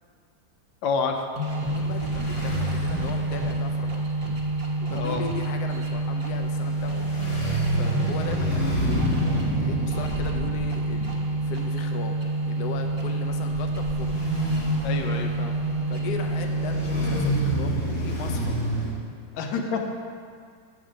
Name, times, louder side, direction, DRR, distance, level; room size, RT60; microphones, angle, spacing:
voice 1, 0.8-1.3 4.9-5.2 14.8-15.6 19.3-19.8, left 5 dB, 90° left, 3 dB, 1.4 m, -28 dB
sound 1, 1.4-17.5, right 2 dB, 50° right, 0.4 m, -28 dB
voice 2, 1.6-4.1 4.9-7.1 7.7-9.2 9.6-14.2 15.9-18.6, left 4 dB, 70° left, 4 dB, 1.0 m, -38 dB
sound 2, 1.7-18.9, equal, 40° left, 1.2 m, -30 dB
7.4 x 3.5 x 6.3 m, 2.1 s
omnidirectional pair, 2.1 m